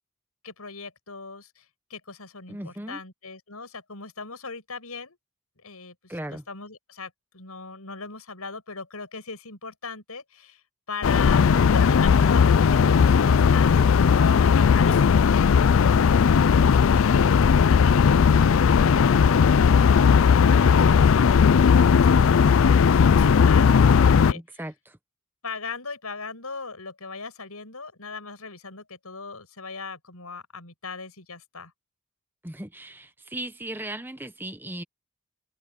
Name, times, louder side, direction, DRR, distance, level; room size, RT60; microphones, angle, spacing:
voice 1, 0.4-1.7 1.9-5.2 5.6-10.6 10.9-24.6 25.4-31.7, left 4 dB, 90° left, 6.8 m, -39 dB
voice 2, 2.5-3.0 6.1-6.4 24.3-25.0 32.4-34.8, right 1 dB, 10° right, 1.0 m, -37 dB
sound 1, 11.0-24.3, left 6 dB, 65° left, 0.4 m, -17 dB
head